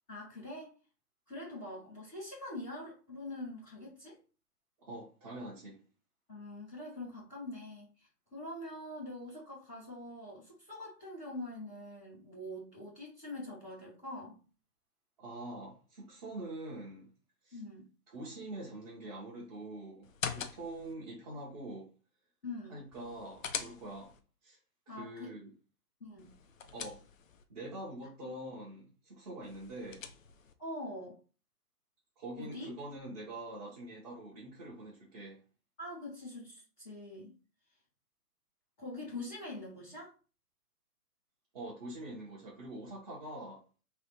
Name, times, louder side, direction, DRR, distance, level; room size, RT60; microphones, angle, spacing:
voice 1, 0.1-0.8 1.3-4.2 6.3-14.4 17.5-17.9 22.4-22.8 24.9-25.3 26.0-26.3 30.6-31.2 32.4-32.7 35.8-37.3 38.8-40.1, left 1 dB, ahead, 0.6 m, -44 dB
voice 2, 4.8-5.8 15.2-17.1 17.4-17.6 18.1-21.9 22.7-24.1 24.4-24.6 24.9-25.5 26.7-27.0 27.5-30.0 32.2-35.4 41.5-43.6, right 1 dB, 25° right, 1.0 m, -44 dB
sound 1, 20.0-20.9 22.9-24.2 26.2-27.4 29.4-30.5, left 7 dB, 55° left, 0.6 m, -42 dB
3.3 x 2.3 x 4.3 m
hypercardioid pair, 160°, 48 cm